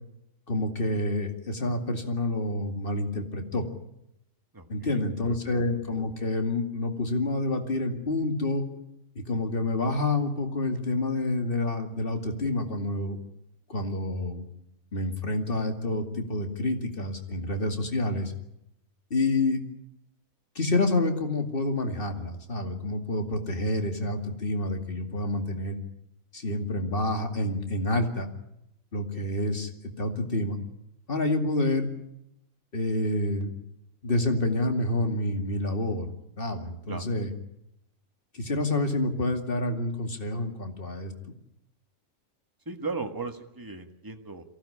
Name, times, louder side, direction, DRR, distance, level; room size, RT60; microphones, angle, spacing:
voice 1, 0.5-3.7 4.7-8.6 9.2-13.2 13.7-14.5 14.9-18.3 19.1-19.6 20.5-25.8 26.3-28.3 28.9-29.7 30.0-30.6 31.1-31.9 32.7-33.5 34.0-36.1 36.4-37.3 38.3-41.1, left 2 dB, 40° left, 5 dB, 2.6 m, -28 dB
voice 2, 4.5-5.4 36.9-37.0 42.6-44.4, right 3 dB, 15° right, 5 dB, 1.7 m, -37 dB
23.0 x 16.0 x 10.0 m, 0.83 s
omnidirectional pair, 1.4 m